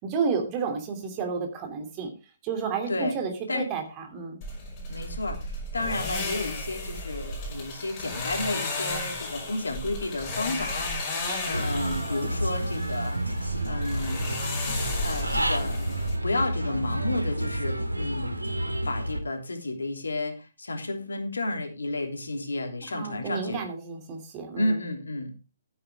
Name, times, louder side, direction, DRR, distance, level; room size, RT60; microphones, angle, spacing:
voice 1, 0.0-2.1 2.4-4.4 22.9-24.8, right 5 dB, 25° right, 5 dB, 3.0 m, -31 dB
sound 1, 4.4-16.2, left 2 dB, 25° left, 5.8 m, -34 dB
voice 2, 4.9-14.2 14.5-18.4 18.8-23.6 24.6-25.3, left 2 dB, 70° left, 4 dB, 3.2 m, -32 dB
Human voice / Bird, 11.5-19.2, right 1 dB, 85° right, 2.2 m, -29 dB
13.5 x 9.7 x 3.6 m, 0.31 s
figure-of-eight pair, 130°, 0 cm